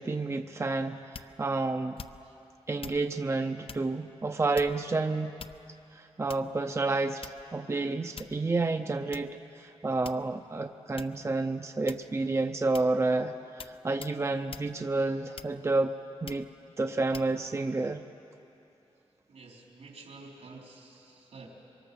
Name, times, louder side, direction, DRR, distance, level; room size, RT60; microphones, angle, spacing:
voice 1, 0.0-2.0 2.7-5.4 5.9-15.9 16.2-16.5 16.8-18.0, right 3 dB, 25° right, 6 dB, 0.6 m, -30 dB
sound 1, 1.1-1.5 2.0-2.4 2.8-3.1 3.7-3.9 4.5-4.9 5.4-5.8 6.3-6.6 7.2-7.6 8.2-8.5 9.1-9.3 10.0-10.5 11.0-11.2 11.9-12.2 12.7-13.0 13.6-13.8 14.0-14.2 14.5-14.7 15.4-15.8 16.3-16.5 17.1-17.3, left 6 dB, 60° left, 0.6 m, -45 dB
voice 2, 19.3-21.5, right 3 dB, 85° right, -1 dB, 3.9 m, -50 dB
24.5 x 23.5 x 7.0 m, 2.8 s
wide cardioid pair, 130°, 11 cm